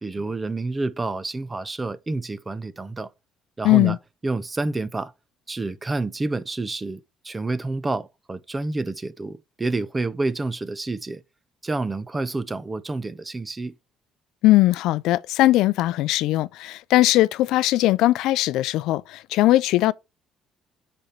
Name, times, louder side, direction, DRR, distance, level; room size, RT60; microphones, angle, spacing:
voice 1, 0.0-3.1 3.6-4.0 4.2-5.1 5.5-11.2 11.6-13.7, right 2 dB, 15° right, 0.5 m, -28 dB
voice 2, 3.6-4.0 14.4-19.9, left 16 dB, 80° left, 0.3 m, -19 dB
6.4 x 4.3 x 5.8 m
cardioid pair, 150°, 0 cm